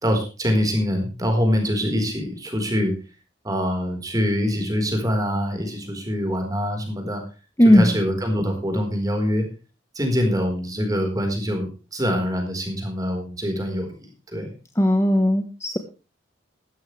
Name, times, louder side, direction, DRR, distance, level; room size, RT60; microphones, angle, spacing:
voice 1, 0.0-2.9 3.4-7.2 7.7-9.4 9.9-13.9 14.3-14.5, equal, 20° right, 3 dB, 4.4 m, -24 dB
voice 2, 7.6-7.9 14.8-15.8, left 1 dB, 15° left, 6 dB, 1.2 m, -16 dB
15.5 x 13.0 x 3.3 m, 0.33 s
head